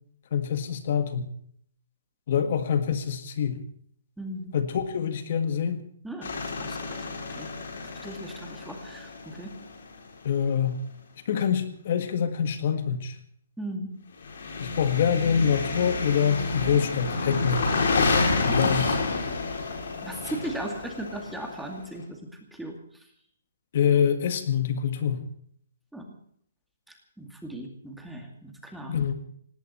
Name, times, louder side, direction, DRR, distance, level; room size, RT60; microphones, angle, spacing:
voice 1, 0.3-1.3 2.3-3.6 4.5-5.8 10.2-10.8 11.3-13.2 14.6-17.7 18.5-19.0 23.7-25.3 28.9-29.1, left 7 dB, 40° left, 9 dB, 1.7 m, -25 dB
voice 2, 4.2-4.5 6.0-6.3 6.6-7.0 7.3-7.5 8.0-9.5 13.6-13.9 20.0-22.2 22.5-22.7 25.9-26.0 27.2-28.9, right 1 dB, ahead, 2 dB, 2.3 m, -37 dB
sound 1, 6.2-10.1 14.2-21.9, left 3 dB, 55° left, 6.2 m, -29 dB
19.0 x 17.0 x 4.4 m, 0.62 s
hypercardioid pair, 170°, 0 cm